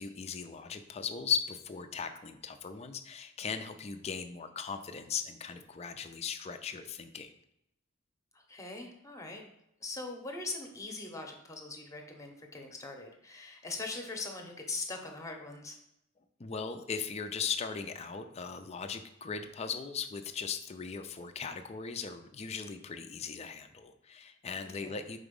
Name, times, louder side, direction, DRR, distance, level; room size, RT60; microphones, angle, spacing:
voice 1, 0.0-7.3 16.4-25.2, left 6 dB, 30° left, 8 dB, 0.4 m, -38 dB
voice 2, 8.3-9.4 9.8-15.8 24.6-25.0, left 3 dB, 15° left, 3 dB, 0.8 m, -41 dB
4.8 x 4.0 x 5.3 m, 0.80 s
head